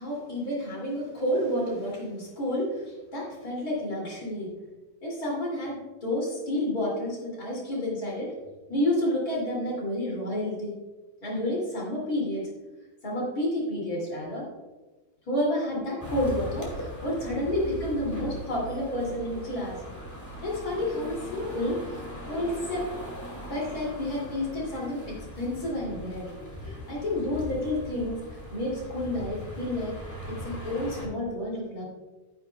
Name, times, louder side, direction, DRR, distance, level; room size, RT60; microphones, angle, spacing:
voice 1, 0.0-4.5 5.0-8.3 8.7-10.8 11.2-12.5 13.0-14.5 15.3-19.8 20.4-23.0 23.5-26.3 26.7-28.2 28.5-30.0 30.3-31.9, left 1 dB, 75° left, -4 dB, 3.2 m, -30 dB
sound 1, 16.0-31.1, equal, 10° left, 2.0 m, -40 dB
11.5 x 9.7 x 2.3 m, 1.2 s
omnidirectional pair, 1.6 m